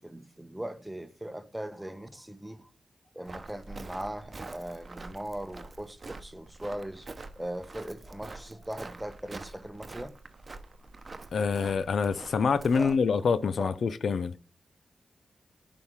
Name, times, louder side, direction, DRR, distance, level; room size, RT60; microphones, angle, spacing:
voice 1, 0.0-2.7 3.1-7.1 7.4-10.1 12.7-12.9 13.6-13.7, right 1 dB, 10° right, 1.0 m, -39 dB
Walk footsteps, 3.2-13.0, right 3 dB, 45° right, 0.9 m, -46 dB
voice 2, 11.3-14.3, left 5 dB, 75° left, 0.5 m, -26 dB
7.0 x 5.2 x 3.5 m
cardioid pair, 55°, 0 cm